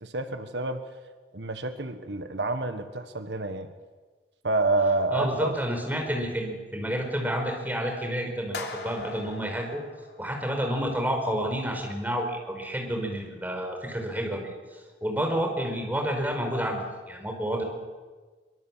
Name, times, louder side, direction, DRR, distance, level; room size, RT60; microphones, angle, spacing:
voice 1, 0.0-0.8 1.3-3.7 4.4-5.6, right 2 dB, 75° right, 8 dB, 1.5 m, -28 dB
voice 2, 5.1-9.8 10.2-16.8 17.1-17.6, equal, 10° right, 2 dB, 4.9 m, -30 dB
sound 1, 8.5-10.8, left 3 dB, 65° left, 3.2 m, -41 dB
24.0 x 23.5 x 7.4 m, 1.4 s
head